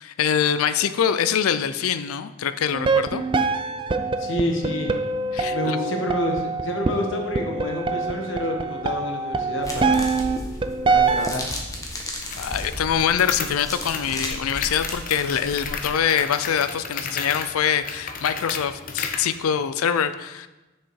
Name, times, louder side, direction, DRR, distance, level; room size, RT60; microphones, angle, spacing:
voice 1, 0.0-3.2 5.3-5.8 12.4-20.5, left 8 dB, 85° left, 12 dB, 0.4 m, -24 dB
sound 1, 2.7-11.4, right 4 dB, 25° right, 0.3 m, -24 dB
voice 2, 4.2-4.9 5.5-10.1 10.9-11.5, left 1 dB, 60° left, 2 dB, 1.2 m, -28 dB
sound 2, 9.6-15.8, left 1 dB, 15° left, 0.9 m, -34 dB
sound 3, 12.2-19.3, left 5 dB, 40° left, 0.7 m, -34 dB
6.5 x 6.3 x 4.6 m, 1.1 s
head